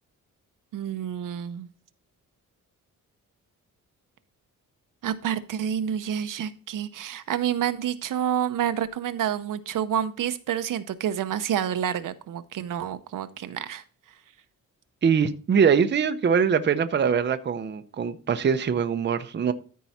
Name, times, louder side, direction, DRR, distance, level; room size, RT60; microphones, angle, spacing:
voice 1, 0.7-1.7 5.0-13.8, right 9 dB, 70° right, 0.7 m, -28 dB
voice 2, 15.0-19.5, right 6 dB, 35° right, 0.6 m, -23 dB
13.5 x 4.7 x 4.2 m
cardioid pair, 120°, 33 cm